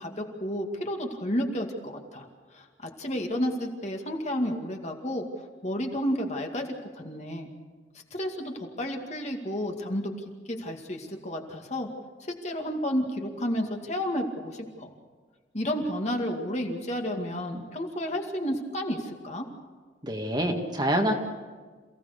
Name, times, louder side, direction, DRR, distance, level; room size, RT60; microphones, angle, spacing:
voice 1, 0.0-2.3 2.5-5.3 5.6-6.7 7.0-7.5 8.1-10.1 10.5-11.9 12.3-14.9 15.5-19.5, equal, 35° left, 2 dB, 2.3 m, -31 dB
voice 2, 20.0-21.1, right 1 dB, 25° right, 2 dB, 1.9 m, -26 dB
28.0 x 16.5 x 6.7 m, 1.4 s
head